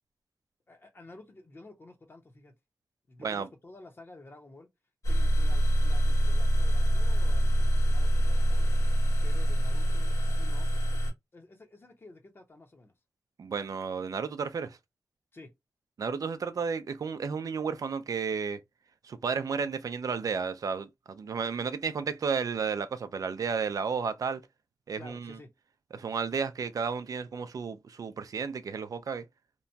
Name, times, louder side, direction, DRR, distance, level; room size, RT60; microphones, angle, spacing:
voice 1, 0.7-2.5 3.1-4.7 5.1-8.7 9.2-10.7 11.3-12.9 15.3-15.5 25.0-25.5, left 2 dB, 40° left, 0.9 m, -51 dB
sound 1, 5.0-11.1, equal, 65° left, 1.5 m, -25 dB
voice 2, 13.4-14.8 16.0-18.6 19.0-24.4 24.9-25.4 25.9-29.2, right 5 dB, 70° right, 0.4 m, -32 dB
2.9 x 2.2 x 2.6 m
wide cardioid pair, 130°, 6 cm